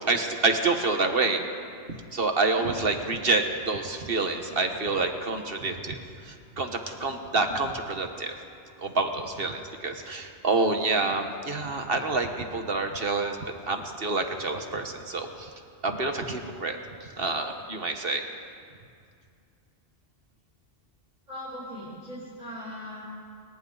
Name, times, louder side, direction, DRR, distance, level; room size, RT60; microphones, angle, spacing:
voice 1, 0.1-1.5 2.1-8.3 8.8-15.5 15.8-18.3, right 3 dB, 55° right, 5 dB, 1.7 m, -28 dB
voice 2, 21.3-23.0, left 1 dB, 40° right, -11 dB, 7.7 m, -39 dB
29.0 x 24.0 x 4.0 m, 2.3 s
omnidirectional pair, 1.1 m